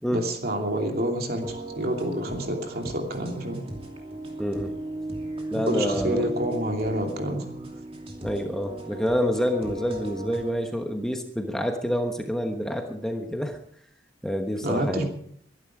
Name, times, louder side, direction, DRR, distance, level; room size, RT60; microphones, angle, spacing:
voice 1, 0.1-3.6 5.7-7.6 14.6-15.1, right 1 dB, 55° right, 3 dB, 2.8 m, -28 dB
sound 1, 1.4-10.5, right 2 dB, 30° right, 2.8 m, -36 dB
voice 2, 4.4-4.7 5.5-6.3 8.2-13.6 14.2-15.1, equal, 5° left, 4 dB, 1.2 m, -27 dB
22.5 x 11.5 x 4.8 m, 0.64 s
head